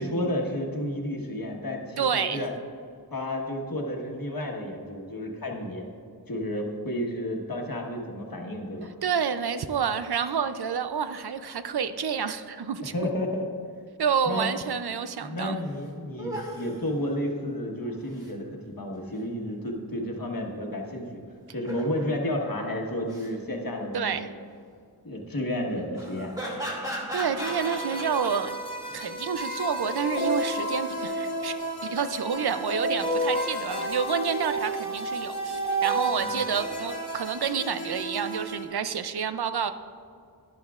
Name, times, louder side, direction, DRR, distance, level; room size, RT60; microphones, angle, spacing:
voice 1, 0.0-2.5 3.1-5.8 6.3-8.9 12.8-13.5 14.2-14.5 15.2-21.2 21.5-24.3 25.0-26.3 36.2-36.5, left 1 dB, 65° left, 1 dB, 1.4 m, -31 dB
voice 2, 2.0-2.4 9.0-12.9 14.0-15.6 23.9-24.3 27.1-28.6 28.9-31.5 31.8-39.7, right 7 dB, 80° right, 11 dB, 0.5 m, -29 dB
sound 1, 15.4-15.5 15.7-15.8 16.2-16.7 17.8-18.3 21.5-22.1 22.9-23.3 25.9-28.3 28.9-29.0, equal, 10° right, 2.3 m, -36 dB
sound 2, 27.4-38.6, right 1 dB, 85° left, 1.4 m, -31 dB
11.5 x 11.0 x 2.4 m, 2.2 s
wide cardioid pair, 50°, 38 cm